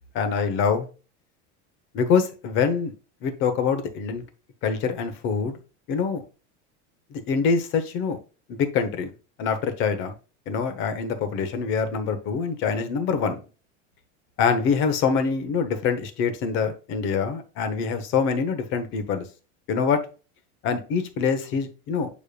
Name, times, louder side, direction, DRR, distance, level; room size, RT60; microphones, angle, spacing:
voice 1, 0.1-0.9 1.9-2.9 3.2-4.2 4.6-5.6 5.9-6.2 7.1-8.2 8.5-9.1 9.4-10.1 10.5-13.4 14.4-19.2 19.7-20.0 20.6-22.1, left 5 dB, 35° left, 0.9 m, -25 dB
8.2 x 5.1 x 2.3 m
cardioid pair, 180°, 35 cm